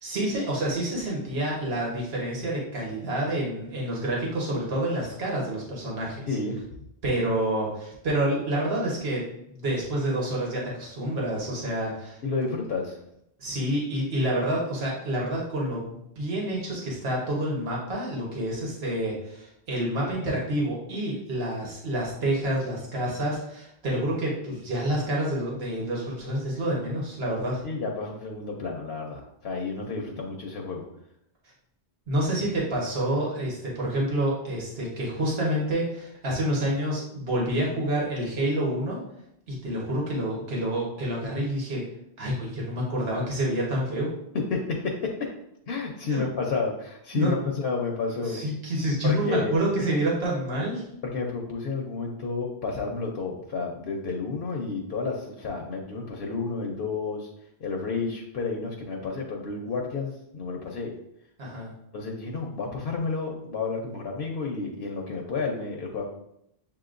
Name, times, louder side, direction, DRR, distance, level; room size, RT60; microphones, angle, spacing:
voice 1, 0.0-6.2 7.0-9.2 9.5-12.2 13.4-27.6 32.1-39.0 39.5-41.8 42.2-44.1 46.1-46.2 47.1-47.5 48.2-50.8 61.4-61.7, right 1 dB, 75° right, -3 dB, 1.4 m, -28 dB
voice 2, 6.3-6.6 12.2-13.0 24.5-24.6 27.6-30.9 44.5-45.3 45.7-48.4 49.0-49.6 51.1-57.3 57.6-60.9 61.9-66.1, left 4 dB, 75° left, 0 dB, 0.9 m, -31 dB
7.2 x 2.9 x 2.5 m, 0.79 s
omnidirectional pair, 1.0 m